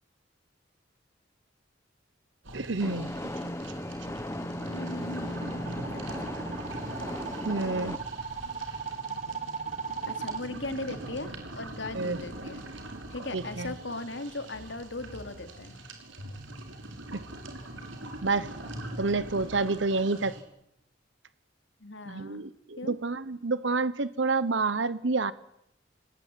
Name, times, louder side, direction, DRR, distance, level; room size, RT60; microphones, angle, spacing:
sound 1, 2.4-20.4, right 1 dB, 85° right, 5.5 m, -42 dB
voice 1, 2.5-3.1 3.4-3.5 7.4-8.0 11.9-12.2 13.3-13.7 17.1-17.2 18.2-18.5 19.0-20.3 22.1-25.3, right 3 dB, 70° right, 16 dB, 1.1 m, -28 dB
sound 2, 2.8-8.0, left 1 dB, 15° left, 1.1 m, -36 dB
sound 3, 4.2-10.4, right 6 dB, 35° right, 1.6 m, -38 dB
voice 2, 4.7-6.6 10.1-12.6 13.1-15.8 21.8-22.5 22.8-23.0, left 2 dB, 70° left, 8 dB, 2.9 m, -39 dB
27.0 x 19.5 x 9.3 m, 0.79 s
head